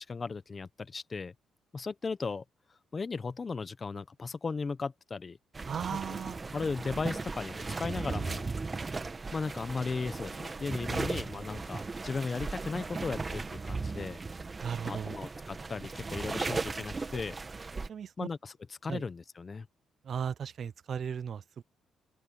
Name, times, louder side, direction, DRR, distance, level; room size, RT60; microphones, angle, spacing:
voice 1, 0.0-1.3 1.7-2.4 2.9-5.4 5.9-6.0 6.5-8.5 9.3-14.2 14.8-17.4 18.2-19.7, left 4 dB, 35° left, 1.1 m, -36 dB
sound 1, 5.5-17.9, right 3 dB, 25° right, 1.6 m, -37 dB
voice 2, 5.7-6.4 14.6-15.2 17.9-18.3 18.9-19.0 20.0-21.6, right 7 dB, 55° right, 0.4 m, -36 dB
cardioid pair, 90°, 0 cm